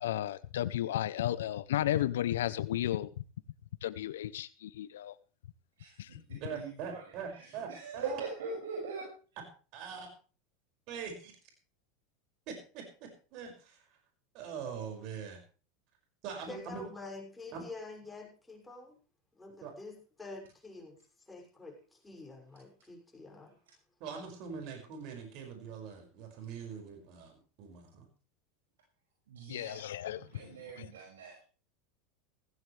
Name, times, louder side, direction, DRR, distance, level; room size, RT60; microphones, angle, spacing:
voice 1, 0.0-3.1 3.8-5.1 6.0-6.4 29.5-30.9, left 12 dB, 85° left, 15 dB, 0.7 m, -34 dB
voice 2, 5.8-9.0 29.3-31.4, right 4 dB, 90° right, -1 dB, 5.9 m, -43 dB
voice 3, 6.4-8.2 9.7-10.1 10.9-11.3 12.5-14.0 14.3-15.4 16.2-16.8 17.5-17.6 19.6-19.7 24.0-27.3 27.6-28.1, right 6 dB, 55° right, 3 dB, 5.9 m, -42 dB
voice 4, 16.5-19.0 19.3-23.6, left 3 dB, 10° left, 0 dB, 6.3 m, -47 dB
16.0 x 15.5 x 3.3 m, 0.36 s
hypercardioid pair, 105°, 0 cm